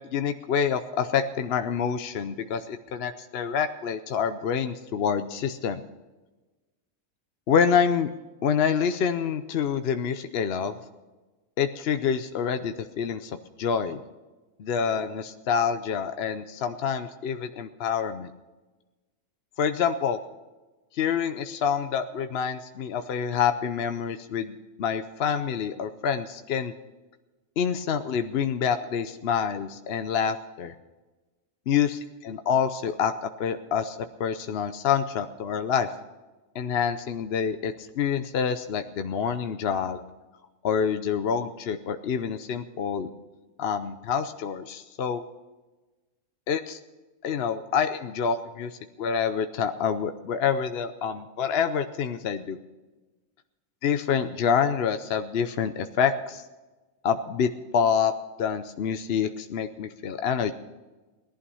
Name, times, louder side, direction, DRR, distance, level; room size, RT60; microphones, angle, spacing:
voice 1, 0.0-5.8 7.5-8.1 8.4-10.7 11.6-13.3 13.6-14.0 14.6-18.3 19.6-20.2 20.9-26.7 27.6-30.7 31.7-33.1 33.4-35.9 36.5-40.0 40.6-43.1 43.6-45.2 46.5-46.8 47.2-48.7 49.0-52.6 53.8-56.4 57.0-58.1 58.4-60.5, left 7 dB, 55° left, 9 dB, 0.8 m, -27 dB
18.0 x 11.5 x 5.5 m, 1.2 s
omnidirectional pair, 1.4 m